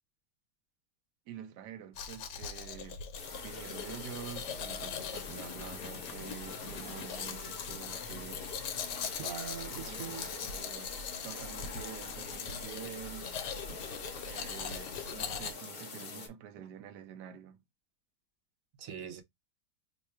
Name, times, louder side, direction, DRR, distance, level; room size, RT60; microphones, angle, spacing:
voice 1, 1.3-3.0 3.4-8.5 9.7-11.0 11.2-13.3 14.2-17.6, right 9 dB, 90° right, 1.2 m, -47 dB
Domestic sounds home sounds, 1.9-15.5, left 6 dB, 85° left, 1.3 m, -41 dB
sound 1, 3.1-16.3, left 4 dB, 45° left, 0.8 m, -44 dB
voice 2, 9.2-10.3 18.8-19.2, right 8 dB, 65° right, 1.0 m, -42 dB
3.1 x 2.2 x 4.3 m
omnidirectional pair, 1.7 m